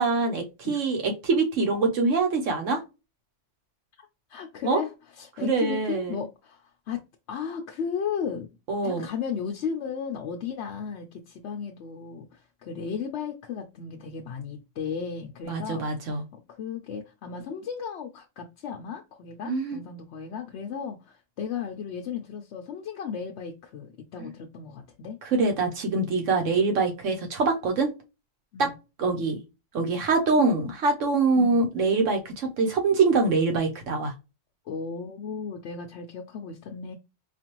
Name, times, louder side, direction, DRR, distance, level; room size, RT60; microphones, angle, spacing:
voice 1, 0.0-2.8 4.6-4.8 5.4-6.1 8.7-9.1 15.4-16.2 19.4-19.8 24.2-24.3 25.2-27.9 28.6-28.7 29.0-29.4 29.7-34.1, right 3 dB, 80° right, 1.3 m, -24 dB
voice 2, 4.3-7.0 7.3-8.5 8.8-15.9 16.3-25.2 28.5-28.7 31.4-31.6 34.7-37.0, left 6 dB, 70° left, 0.8 m, -35 dB
4.5 x 2.5 x 2.9 m
omnidirectional pair, 1.3 m